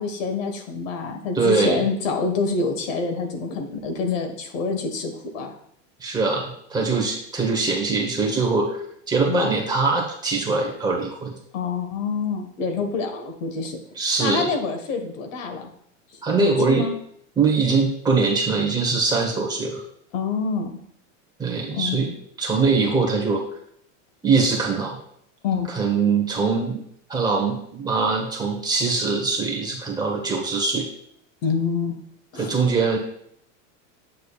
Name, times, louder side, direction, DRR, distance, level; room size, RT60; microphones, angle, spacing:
voice 1, 0.0-5.5 9.3-9.5 11.5-13.8 14.2-15.7 16.3-16.9 20.1-20.7 21.7-22.1 25.4-25.7 31.4-32.0 32.3-32.5, left 4 dB, 80° left, 6 dB, 1.6 m, -26 dB
voice 2, 1.3-1.8 6.0-8.8 9.1-11.4 13.9-14.5 16.2-16.9 17.4-19.8 21.4-22.1 22.4-23.4 24.2-25.0 25.7-26.8 27.1-30.9 32.4-33.0, right 4 dB, 10° right, 0 dB, 1.1 m, -22 dB
8.4 x 6.6 x 2.4 m, 0.68 s
supercardioid pair, 160°, 38 cm